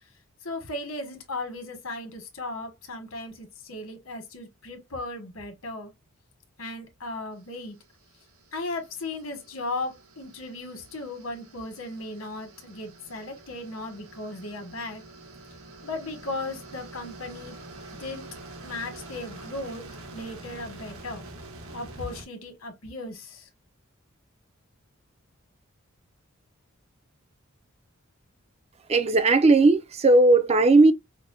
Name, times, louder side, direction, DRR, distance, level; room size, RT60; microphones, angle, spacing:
voice 1, 0.4-5.9 6.6-7.8 8.5-15.0 15.8-17.6 18.0-18.3 18.6-19.8 20.1-21.2 21.7-23.4, left 2 dB, 85° left, 1.4 m, -36 dB
sound 1, 7.6-22.2, right 2 dB, 85° right, 1.2 m, -46 dB
voice 2, 28.9-30.9, right 2 dB, 30° right, 0.3 m, -17 dB
5.8 x 2.1 x 2.5 m
head